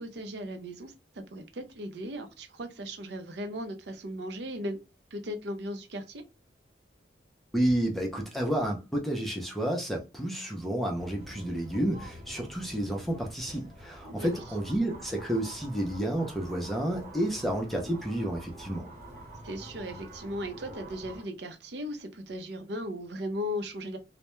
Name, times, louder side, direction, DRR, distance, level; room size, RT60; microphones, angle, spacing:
voice 1, 0.0-4.8 5.1-6.2 14.2-14.4 19.4-24.0, equal, 65° right, 0.5 m, -37 dB
voice 2, 7.5-18.9, right 1 dB, ahead, 0.5 m, -30 dB
sound 1, 10.9-21.2, right 1 dB, 45° right, 1.0 m, -46 dB
2.2 x 2.1 x 2.9 m
head